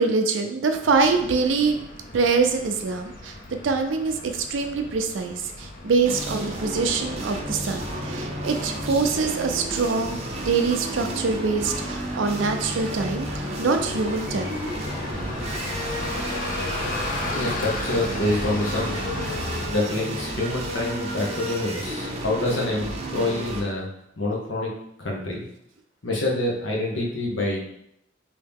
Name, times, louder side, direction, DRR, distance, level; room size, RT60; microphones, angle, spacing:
voice 1, 0.0-1.8 2.1-3.4 3.6-10.2 10.5-14.6, right 4 dB, 80° right, 6 dB, 0.4 m, -24 dB
Bus, 0.8-19.7, left 2 dB, 45° left, 0.6 m, -35 dB
sound 1, 6.0-23.6, right 1 dB, 35° right, 0.5 m, -32 dB
voice 2, 17.3-18.9 19.7-23.9 24.2-24.7 25.0-25.4 26.0-27.6, left 2 dB, 80° left, -2 dB, 0.9 m, -26 dB
3.1 x 2.7 x 3.5 m, 0.75 s
head